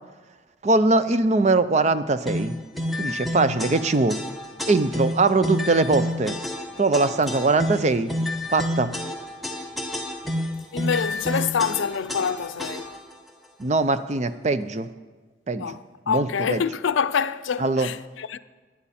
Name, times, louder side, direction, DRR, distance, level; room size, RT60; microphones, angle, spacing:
voice 1, 0.6-2.5 3.0-4.2 4.7-6.3 6.8-8.1 8.5-8.9 13.6-14.9 15.5-15.8 16.1-16.6 17.6-17.9, right 3 dB, 35° right, 0.5 m, -21 dB
sound 1, 2.3-13.1, left 1 dB, ahead, 1.0 m, -30 dB
voice 2, 10.7-12.9 15.5-18.4, left 6 dB, 90° left, 0.5 m, -26 dB
18.0 x 11.0 x 4.3 m
head